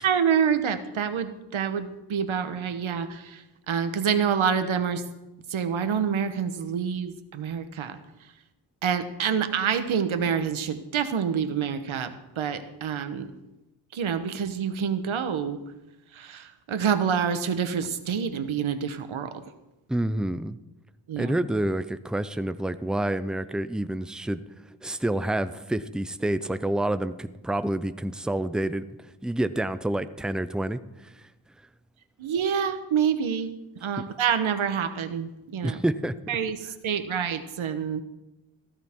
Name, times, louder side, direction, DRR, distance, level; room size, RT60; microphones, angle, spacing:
voice 1, 0.0-5.0 5.5-8.0 8.8-13.3 13.9-15.6 16.1-19.3 21.1-21.3 32.2-33.5 33.8-35.8 36.3-38.0, right 7 dB, 85° right, 10 dB, 1.1 m, -27 dB
voice 2, 19.9-20.6 21.2-24.4 24.8-31.3 35.6-36.1, right 1 dB, ahead, 12 dB, 0.5 m, -28 dB
15.0 x 13.5 x 3.7 m, 1.0 s
wide cardioid pair, 95°, 47 cm